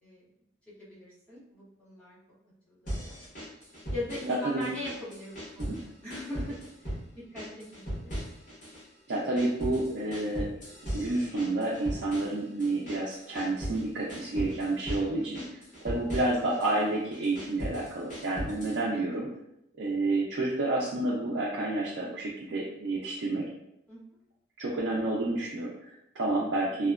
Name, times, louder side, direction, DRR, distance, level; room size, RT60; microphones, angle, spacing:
voice 1, 0.8-2.2 2.7-3.1 3.9-8.1 15.2-15.3 18.9-19.1 23.9-24.0, left 1 dB, 10° left, -11 dB, 1.1 m, -40 dB
sound 1, 2.9-4.4 4.6-5.8 6.1-7.0 7.4-8.8 9.1-13.8 14.1-15.1 15.3-16.7 17.1-18.8, equal, 45° left, 1.2 m, -38 dB
voice 2, 4.3-4.7 5.6-5.8 9.1-10.5 10.9-15.4 15.8-19.3 19.8-23.5 24.6-26.9, right 2 dB, 85° right, -6 dB, 0.5 m, -29 dB
2.8 x 2.1 x 2.3 m, 0.81 s
head